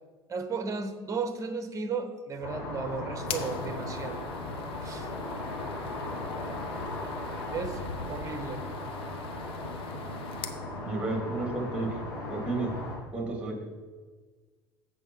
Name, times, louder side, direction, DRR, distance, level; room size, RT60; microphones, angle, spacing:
voice 1, 0.3-4.2 4.8-5.1 7.5-7.8 8.1-8.6, right 4 dB, 25° right, 8 dB, 1.1 m, -34 dB
sound 1, 2.4-13.0, left 2 dB, 80° left, 2.4 m, -37 dB
sound 2, 3.2-10.6, left 8 dB, 45° left, 0.8 m, -45 dB
voice 2, 10.8-12.0 12.3-12.7 13.1-13.6, right 2 dB, 10° right, 0 dB, 3.1 m, -31 dB
7.8 x 5.4 x 6.3 m, 1.4 s
figure-of-eight pair, 65°, 13 cm